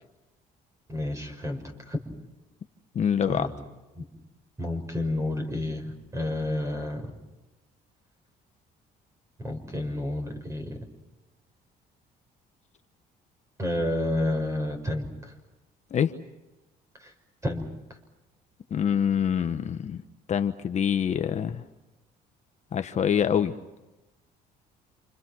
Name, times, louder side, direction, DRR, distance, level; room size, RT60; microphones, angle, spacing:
voice 1, 0.9-2.0 3.3-3.5 4.0-4.1 4.6-7.0 9.4-10.8 13.6-15.3 17.0-17.1 17.4-17.7, left 1 dB, 15° right, 5 dB, 6.4 m, -30 dB
voice 2, 2.9-3.5 15.9-16.1 18.7-20.0 20.3-21.6 22.7-23.6, left 8 dB, 45° left, 8 dB, 1.1 m, -25 dB
28.0 x 28.0 x 6.2 m, 1.0 s
cardioid pair, 110°, 17 cm